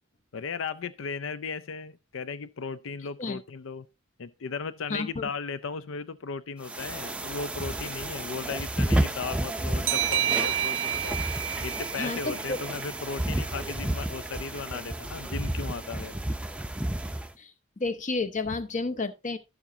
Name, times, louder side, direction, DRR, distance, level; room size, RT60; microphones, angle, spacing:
voice 1, 0.3-3.9 4.2-11.2 11.6-16.2, left 5 dB, 80° left, 0.5 m, -36 dB
voice 2, 4.9-5.3 12.0-12.6 17.4-17.5 17.8-19.4, left 3 dB, 40° left, 0.9 m, -31 dB
sound 1, 6.6-17.3, right 1 dB, 5° right, 0.5 m, -31 dB
sound 2, 9.9-13.2, right 12 dB, 70° right, 0.4 m, -30 dB
12.5 x 7.2 x 2.7 m
head